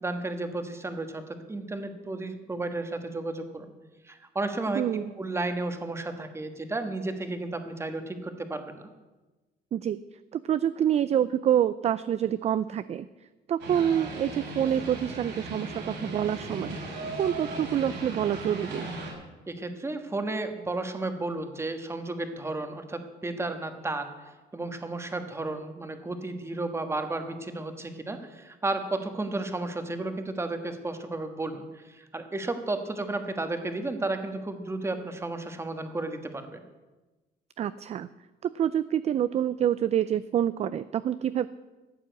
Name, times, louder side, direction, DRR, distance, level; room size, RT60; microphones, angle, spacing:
voice 1, 0.0-3.7 4.0-4.8 5.2-8.9 19.5-24.1 24.5-36.6, right 2 dB, 15° right, 7 dB, 1.4 m, -33 dB
voice 2, 4.7-5.1 9.7-10.0 10.3-13.1 13.5-18.9 37.6-38.1 38.4-41.5, right 10 dB, 35° right, 15 dB, 0.4 m, -27 dB
sound 1, 13.6-19.1, right 2 dB, 90° right, 5.5 m, -37 dB
14.5 x 8.6 x 8.1 m, 1.2 s
cardioid pair, 145°, 18 cm